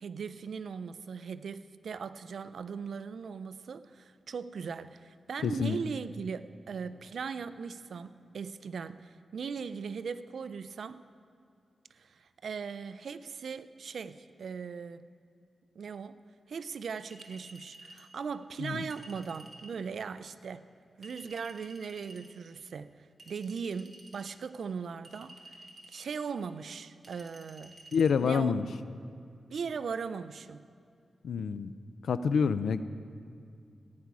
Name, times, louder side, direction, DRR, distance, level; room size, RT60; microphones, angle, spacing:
voice 1, 0.0-11.0 11.9-15.0 15.8-16.2 16.5-20.6 21.0-22.9 23.3-25.6 25.9-27.7 28.2-28.5 29.5-30.6, right 6 dB, 75° right, 13 dB, 0.4 m, -39 dB
voice 2, 5.4-5.8 18.6-18.8 27.9-28.7 31.2-31.7 32.0-32.8, left 6 dB, 90° left, 13 dB, 0.4 m, -27 dB
Chink clink, 17.1-18.1 18.9-19.8 21.0-22.3 23.2-24.4 25.0-26.1 27.0-28.1, right 1 dB, 25° right, 1.9 m, -52 dB
15.5 x 9.6 x 4.8 m, 2.4 s
wide cardioid pair, 100°, 0 cm